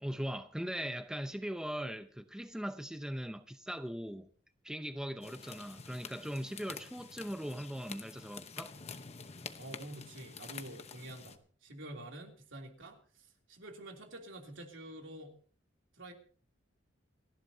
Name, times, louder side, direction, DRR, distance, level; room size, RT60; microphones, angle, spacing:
voice 1, 0.0-4.3 4.6-8.7, equal, 5° right, 0.6 m, -40 dB
sound 1, 5.2-11.4, left 5 dB, 35° left, 0.9 m, -48 dB
voice 2, 9.5-15.4 15.9-16.1, right 1 dB, 75° right, 3.1 m, -48 dB
28.5 x 11.0 x 2.8 m
head